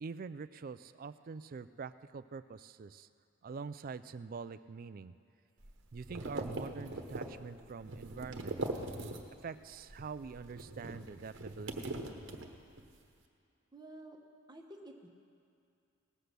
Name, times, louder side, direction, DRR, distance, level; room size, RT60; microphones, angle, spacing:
voice 1, 0.0-3.1 3.4-5.1 5.9-8.6 9.4-12.0, right 5 dB, 45° right, 14 dB, 0.4 m, -45 dB
sound 1, 5.6-9.5 9.8-12.9, right 2 dB, 60° right, 1.1 m, -42 dB
voice 2, 13.7-14.2 14.5-15.1, right 1 dB, 20° right, 2 dB, 1.1 m, -51 dB
18.5 x 7.9 x 6.7 m, 2.5 s
head